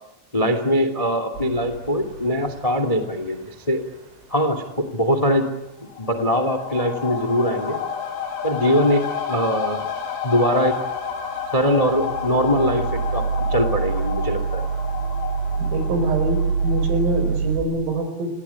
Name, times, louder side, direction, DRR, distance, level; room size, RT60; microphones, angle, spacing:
voice 1, 0.3-3.8 4.3-5.5 6.0-7.8 8.4-9.9 10.2-10.8 11.5-14.6, equal, 30° left, 9 dB, 0.6 m, -22 dB
sound 1, 1.4-2.9 11.5-17.6, right 5 dB, 60° right, 8.2 m, -26 dB
sound 2, 5.8-17.3 17.6-17.7, left 7 dB, 70° left, 6.6 m, -31 dB
voice 2, 15.6-18.3, right 2 dB, 80° right, 7 dB, 7.4 m, -24 dB
30.0 x 19.0 x 9.8 m, 0.99 s
omnidirectional pair, 6.0 m